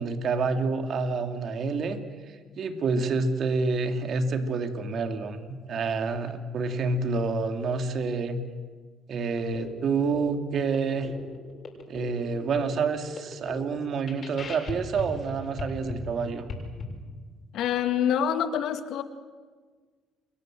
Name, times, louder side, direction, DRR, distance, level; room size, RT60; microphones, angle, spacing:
voice 1, 0.0-2.0 2.6-8.4 9.1-11.1 11.9-16.5, right 4 dB, 55° right, 6 dB, 2.7 m, -28 dB
sound 1, 9.4-16.8, left 4 dB, 40° left, 7.0 m, -40 dB
voice 2, 17.5-19.0, left 9 dB, 70° left, 8 dB, 2.1 m, -26 dB
29.5 x 23.5 x 7.8 m, 1.5 s
cardioid pair, 95°, 0 cm